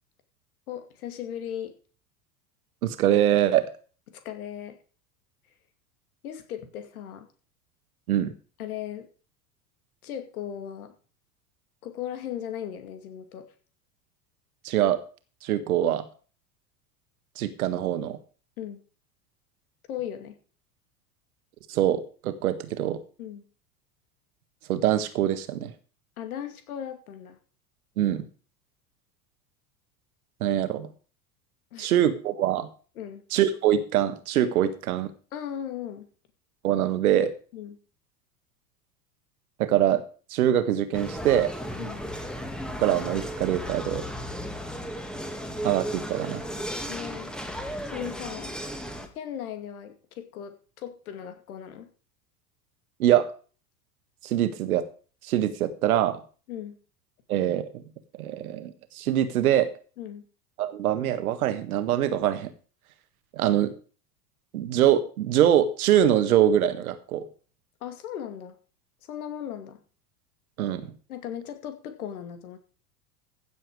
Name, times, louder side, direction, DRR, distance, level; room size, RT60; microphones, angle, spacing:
voice 1, 0.7-1.7 4.1-4.8 6.2-7.3 8.6-9.1 10.0-10.9 11.8-13.5 18.6-18.8 19.9-20.4 23.2-23.4 26.2-27.4 31.7-31.9 33.0-33.2 35.3-36.1 37.5-37.8 41.8-42.0 46.9-47.3 47.8-48.5 49.1-51.9 56.5-56.8 60.0-60.3 67.8-68.6 69.1-69.8 71.1-72.6, left 10 dB, 65° left, 8 dB, 2.5 m, -37 dB
voice 2, 2.8-3.6 8.1-8.3 14.6-15.0 15.4-16.0 17.4-18.2 21.7-23.0 24.7-25.7 28.0-28.3 30.4-30.9 31.8-32.7 33.3-35.1 36.6-37.3 39.6-40.0 40.3-41.5 42.8-44.0 45.6-46.4 53.0-53.3 54.2-54.8 55.3-56.2 57.3-57.7 58.2-59.7 60.6-62.5 63.3-63.7 64.5-67.2 70.6-70.9, right 11 dB, 70° right, 11 dB, 1.6 m, -23 dB
sound 1, 40.9-49.1, equal, ahead, 2.0 m, -35 dB
15.5 x 7.5 x 4.8 m, 0.39 s
figure-of-eight pair, 80°, 46 cm